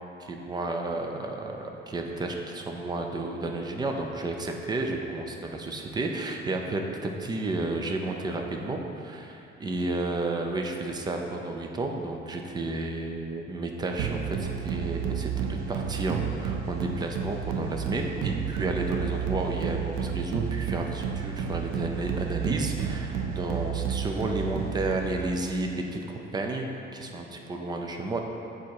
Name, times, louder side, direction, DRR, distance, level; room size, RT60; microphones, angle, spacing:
voice 1, 0.2-26.7 26.9-28.2, right 2 dB, 20° right, 2 dB, 0.5 m, -32 dB
sound 1, 14.0-25.5, right 7 dB, 90° right, 0.5 m, -31 dB
7.2 x 4.2 x 4.6 m, 2.8 s
cardioid pair, 165°, 21 cm